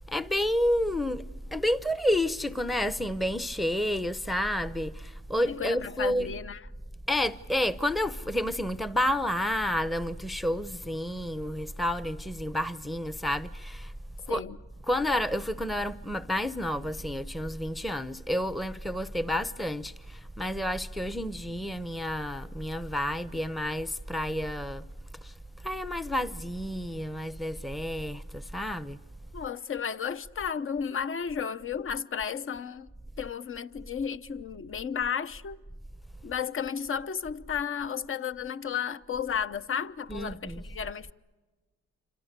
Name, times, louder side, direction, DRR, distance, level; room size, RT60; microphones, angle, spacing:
voice 1, 0.1-1.3 1.5-6.3 7.1-13.9 14.3-14.4 14.9-24.9 25.2-25.3 25.6-29.0 40.1-40.6, left 1 dB, ahead, 0.8 m, -30 dB
voice 2, 5.5-6.6 14.3-14.6 29.3-32.9 33.2-35.6 36.2-41.1, left 7 dB, 45° left, 0.9 m, -33 dB
28.0 x 26.5 x 6.8 m
cardioid pair, 90°, 30 cm